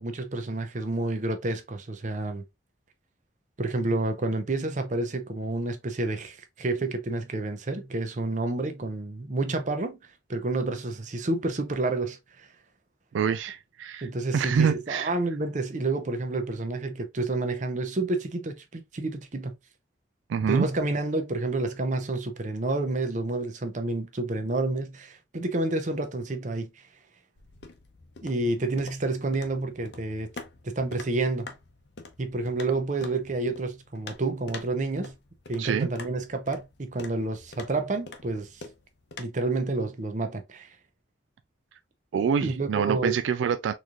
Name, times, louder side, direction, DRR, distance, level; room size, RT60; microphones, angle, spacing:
voice 1, 0.0-2.4 3.6-10.0 10.3-12.5 14.0-19.6 20.5-26.7 28.2-30.3 30.6-31.5 32.2-35.1 35.5-38.6 39.2-40.7 42.4-43.2, right 2 dB, 40° right, 0.7 m, -29 dB
voice 2, 13.1-14.1 14.3-15.1 20.3-20.7 35.6-35.9 42.1-43.7, right 7 dB, 80° right, 0.3 m, -26 dB
sound 1, 27.4-39.2, left 3 dB, 60° left, 0.7 m, -46 dB
4.0 x 3.1 x 2.3 m
head